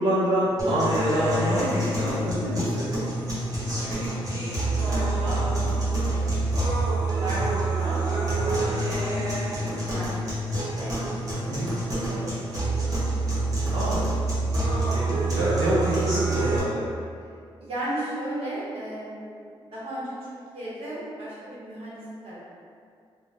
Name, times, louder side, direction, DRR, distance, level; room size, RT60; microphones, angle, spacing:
voice 1, 0.0-2.9 11.5-11.7 13.7-14.0 14.9-16.9, right 1 dB, 65° right, -12 dB, 0.6 m, -26 dB
sound 1, 0.6-16.6, right 2 dB, 35° right, 0.8 m, -27 dB
voice 2, 3.3-4.5 4.8-5.4 6.1-8.5 8.9-10.9 11.3-13.4 14.7-15.0 17.6-20.1 20.5-22.4, right 1 dB, 85° right, -8 dB, 0.9 m, -37 dB
2.6 x 2.1 x 3.2 m, 2.3 s
wide cardioid pair, 165°, 10 cm